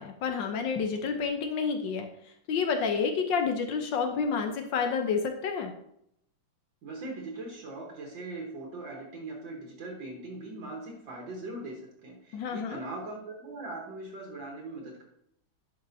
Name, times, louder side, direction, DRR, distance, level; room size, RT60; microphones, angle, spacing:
voice 1, 0.0-2.1 2.5-5.7 12.3-12.8, left 5 dB, 65° left, 5 dB, 1.5 m, -29 dB
voice 2, 6.8-15.0, right 2 dB, 65° right, -1 dB, 2.0 m, -40 dB
11.0 x 5.4 x 2.7 m, 0.74 s
omnidirectional pair, 2.3 m